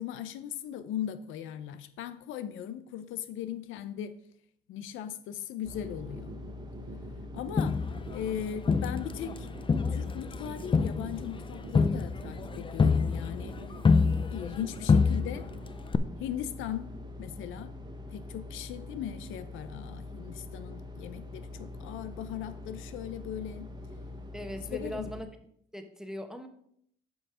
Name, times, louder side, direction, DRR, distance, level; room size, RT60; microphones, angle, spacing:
voice 1, 0.0-4.2 4.7-6.4 7.3-7.8 8.1-9.5 9.9-13.6 14.3-15.5 16.2-16.9 17.2-17.7 18.1-23.7 24.7-25.1, left 10 dB, 90° left, 12 dB, 0.6 m, -38 dB
sound 1, 5.6-25.2, left 2 dB, 20° right, 1.2 m, -44 dB
sound 2, 5.7-15.7, right 4 dB, 50° right, 0.9 m, -46 dB
Crowd, 7.6-9.4 9.7-14.6 14.9-15.6 15.9-16.0, left 5 dB, 25° left, 0.5 m, -26 dB
voice 2, 24.3-25.3 25.7-26.5, equal, 5° right, 6 dB, 1.1 m, -39 dB
7.1 x 5.5 x 4.9 m, 0.69 s
cardioid pair, 90°, 20 cm